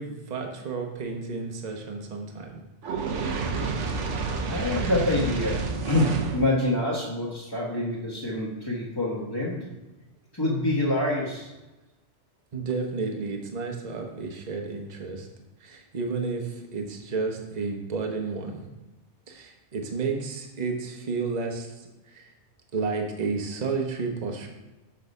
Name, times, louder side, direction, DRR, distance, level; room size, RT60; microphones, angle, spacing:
voice 1, 0.0-2.6 12.5-15.3 15.6-18.7 19.3-21.7 22.1-22.3 22.7-24.5, right 4 dB, 40° right, 2 dB, 1.0 m, -31 dB
Fire, 2.8-6.5, right 4 dB, 80° right, 1.1 m, -29 dB
voice 2, 4.5-5.6 5.9-9.6 10.3-11.5, left 1 dB, 20° left, -7 dB, 1.3 m, -26 dB
6.7 x 4.8 x 5.4 m, 1.1 s
omnidirectional pair, 1.2 m